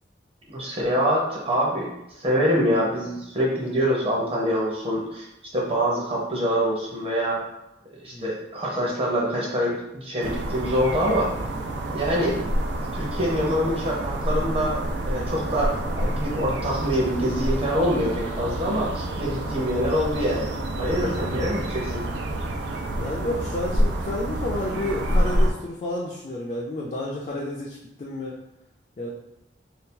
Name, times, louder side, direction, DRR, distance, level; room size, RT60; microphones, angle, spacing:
voice 1, 0.5-1.9 2.2-5.3 5.5-7.4 8.0-11.3 11.9-12.4 12.9-20.5 20.8-22.0, equal, 35° right, -3 dB, 0.8 m, -25 dB
sound 1, 10.2-25.5, right 1 dB, 90° right, 0.4 m, -28 dB
voice 2, 20.8-21.2 23.0-28.4 29.0-29.1, left 1 dB, 40° left, -4 dB, 0.4 m, -31 dB
2.7 x 2.3 x 3.7 m, 0.88 s
head